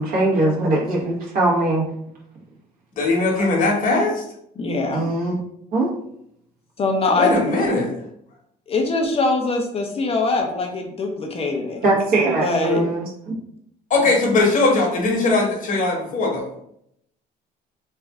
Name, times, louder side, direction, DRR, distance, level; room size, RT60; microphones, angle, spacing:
voice 1, 0.0-1.8 4.9-5.3 5.7-5.9 11.8-13.3, right 2 dB, 60° right, -3 dB, 1.3 m, -21 dB
voice 2, 3.0-4.2 7.2-7.9 13.9-16.5, left 2 dB, 50° left, 0 dB, 1.1 m, -19 dB
voice 3, 4.6-5.0 6.8-7.3 8.7-11.8 12.4-12.8, left 3 dB, 35° left, 2 dB, 0.6 m, -22 dB
3.2 x 2.4 x 3.5 m, 0.73 s
cardioid pair, 110°, 17 cm